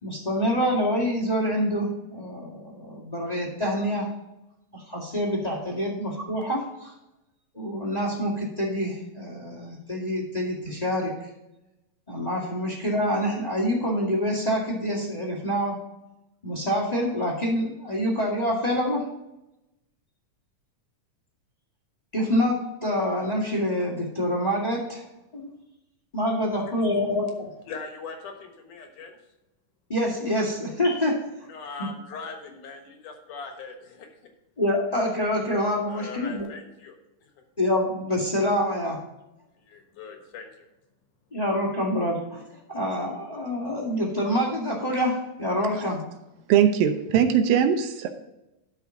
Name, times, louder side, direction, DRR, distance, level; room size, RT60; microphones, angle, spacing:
voice 1, 0.0-4.1 4.7-6.9 7.5-11.1 12.1-15.8 16.4-19.1 22.1-25.0 25.3-25.5 26.1-27.5 29.9-31.2 31.8-31.9 34.6-36.4 37.6-39.0 41.3-46.0, equal, 15° left, -3 dB, 1.4 m, -26 dB
voice 2, 27.7-29.2 31.5-34.1 35.8-37.0 37.2-37.3 39.6-40.7, left 4 dB, 65° left, 4 dB, 2.7 m, -40 dB
voice 3, 46.5-48.1, right 8 dB, 80° right, 7 dB, 2.5 m, -20 dB
11.5 x 5.8 x 3.8 m, 0.93 s
omnidirectional pair, 4.1 m